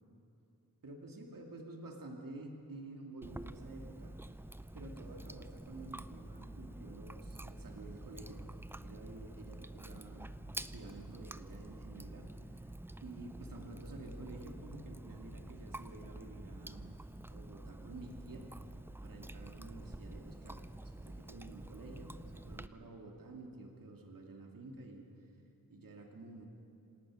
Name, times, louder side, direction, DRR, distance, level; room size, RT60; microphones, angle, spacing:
voice 1, 0.8-4.1 4.7-8.5 8.7-12.7 13.0-16.9 17.3-18.5 19.0-25.1 25.7-26.5, right 2 dB, 70° right, 1 dB, 2.6 m, -50 dB
Chewing mastication, 3.2-22.7, right 1 dB, 5° right, 0.4 m, -48 dB
26.5 x 18.0 x 6.4 m, 2.7 s
wide cardioid pair, 125°, 35 cm